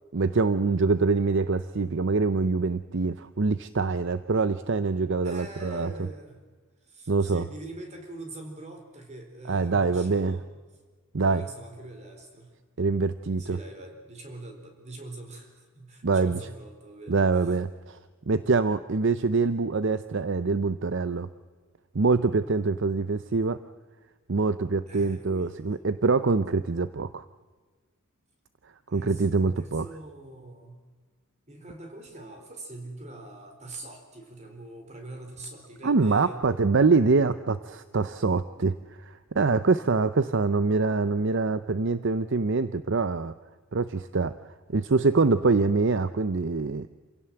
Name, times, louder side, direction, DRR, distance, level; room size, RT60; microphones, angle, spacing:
voice 1, 0.1-5.9 7.1-7.4 9.5-10.4 11.1-11.4 12.8-13.6 16.0-16.4 17.1-18.0 18.3-21.3 21.9-23.6 24.3-27.2 28.9-29.8 35.8-38.7 39.3-43.3 43.7-44.3 44.7-46.9, right 4 dB, 55° right, 13 dB, 0.7 m, -24 dB
voice 2, 5.2-6.4 6.8-10.5 11.2-12.5 13.4-17.6 24.9-25.8 28.9-30.8 31.5-36.4, right 2 dB, 30° right, 4 dB, 4.4 m, -43 dB
28.0 x 17.0 x 7.8 m, 1.4 s
head